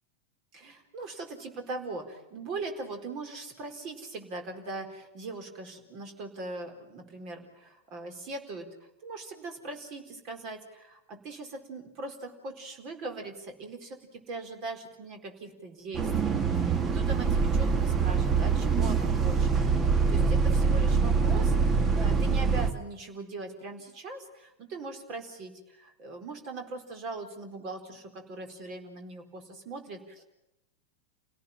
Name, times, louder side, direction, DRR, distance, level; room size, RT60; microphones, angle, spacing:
voice 1, 0.5-19.5 20.1-30.2, right 3 dB, 40° right, 6 dB, 4.4 m, -40 dB
Bus, 15.9-22.7, right 5 dB, 20° right, 1.8 m, -24 dB
29.5 x 17.5 x 7.5 m, 0.90 s
figure-of-eight pair, 90°, 0 cm